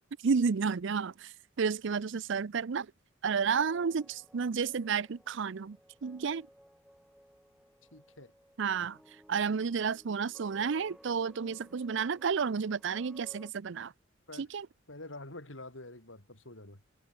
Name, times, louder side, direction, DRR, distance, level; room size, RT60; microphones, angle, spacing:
voice 1, 0.2-2.9 3.2-5.8 6.0-6.5 8.6-9.0 9.3-13.9 14.4-14.7, right 6 dB, 65° right, 0.5 m, -31 dB
sound 1, 3.2-13.5, equal, ahead, 7.1 m, -59 dB
voice 2, 7.9-8.3 14.3-14.5 14.9-16.8, left 2 dB, 75° left, 5.6 m, -47 dB
head